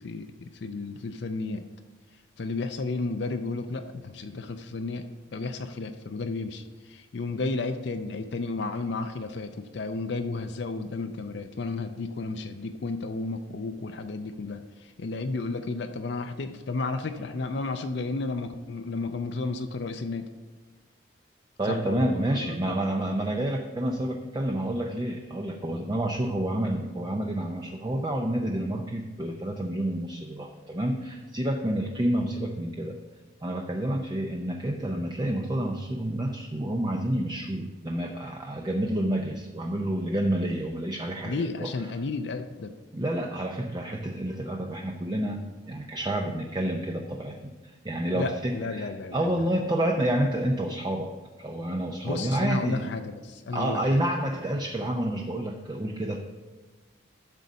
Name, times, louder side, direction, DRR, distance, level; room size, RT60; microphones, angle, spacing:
voice 1, 0.0-1.6 2.4-5.0 5.3-20.3 21.6-22.7 41.2-42.7 48.1-49.3 52.0-54.0, left 3 dB, 60° left, 7 dB, 0.5 m, -32 dB
voice 2, 21.6-33.0 33.4-41.9 42.9-53.0 53.5-56.2, right 1 dB, 20° right, 2 dB, 0.5 m, -29 dB
12.0 x 4.1 x 6.3 m, 1.3 s
head